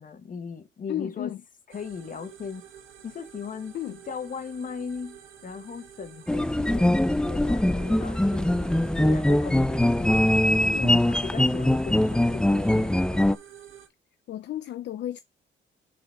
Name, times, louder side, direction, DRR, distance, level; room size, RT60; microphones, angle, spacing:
voice 1, 0.0-1.3 1.7-2.6 3.0-3.8 4.1-10.2 10.6-12.9, left 5 dB, 45° left, 1.3 m, -38 dB
voice 2, 0.9-1.4 3.7-4.0 10.7-11.0 14.3-15.2, left 12 dB, 60° left, 0.5 m, -33 dB
sound 1, 1.7-13.9, right 9 dB, 85° right, 1.6 m, -48 dB
sound 2, 6.3-13.4, left 1 dB, 5° left, 0.4 m, -22 dB
6.5 x 3.9 x 4.5 m
cardioid pair, 90°, 20 cm